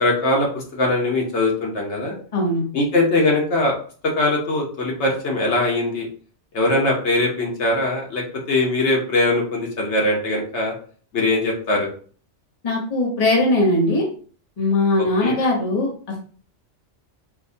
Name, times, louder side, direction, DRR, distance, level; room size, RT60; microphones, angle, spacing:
voice 1, 0.0-2.1 2.7-3.7 4.2-6.1 6.5-10.7 11.1-11.9 15.0-15.4, left 2 dB, 70° left, -1 dB, 1.1 m, -21 dB
voice 2, 12.6-14.0 14.6-15.9, left 2 dB, 35° left, -1 dB, 0.9 m, -19 dB
4.5 x 2.1 x 2.6 m, 0.44 s
omnidirectional pair, 1.2 m